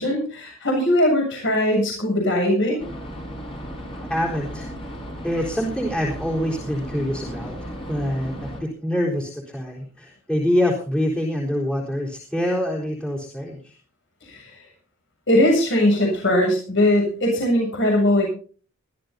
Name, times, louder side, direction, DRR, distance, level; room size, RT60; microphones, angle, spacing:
voice 1, 0.0-2.8 14.2-14.5 15.3-18.3, left 1 dB, 60° left, 1 dB, 7.3 m, -20 dB
sound 1, 2.8-8.6, equal, 25° left, 5.9 m, -35 dB
voice 2, 4.1-4.7 5.2-13.7, equal, 5° left, -2 dB, 4.0 m, -25 dB
23.0 x 14.0 x 2.8 m, 0.41 s
head